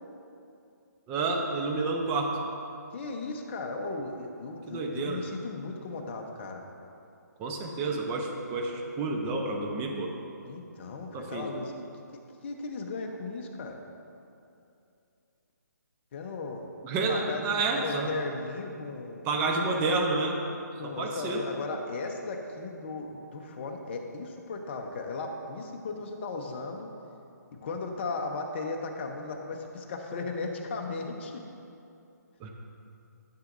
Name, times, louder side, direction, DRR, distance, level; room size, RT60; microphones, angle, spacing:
voice 1, 1.1-2.3 4.7-5.2 7.4-10.1 11.1-11.5 16.8-18.1 19.2-20.4 20.8-21.4 32.4-32.5, right 3 dB, 20° right, 1 dB, 0.8 m, -29 dB
voice 2, 2.9-6.6 10.4-11.7 12.4-13.8 16.1-16.7 17.1-19.3 20.8-26.9 27.5-31.4, left 3 dB, 35° left, 2 dB, 0.9 m, -36 dB
13.0 x 7.2 x 2.6 m, 2.7 s
hypercardioid pair, 150°, 10 cm